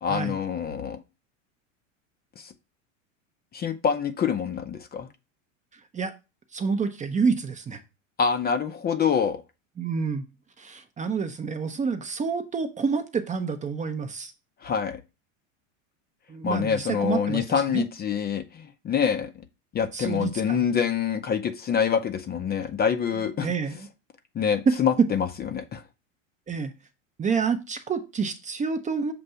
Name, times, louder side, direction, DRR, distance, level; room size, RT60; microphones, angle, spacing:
voice 1, 0.0-1.0 2.4-2.5 3.5-5.1 8.2-9.4 14.6-15.0 16.4-19.3 19.7-23.5 24.3-25.8, left 7 dB, 25° left, 0.6 m, -26 dB
voice 2, 6.5-7.8 9.8-10.2 10.6-14.3 16.3-17.4 17.7-17.8 19.9-20.7 23.4-23.9 26.5-26.7 27.2-29.1, right 5 dB, 20° right, 0.7 m, -28 dB
6.8 x 2.6 x 5.5 m
hypercardioid pair, 105°, 39 cm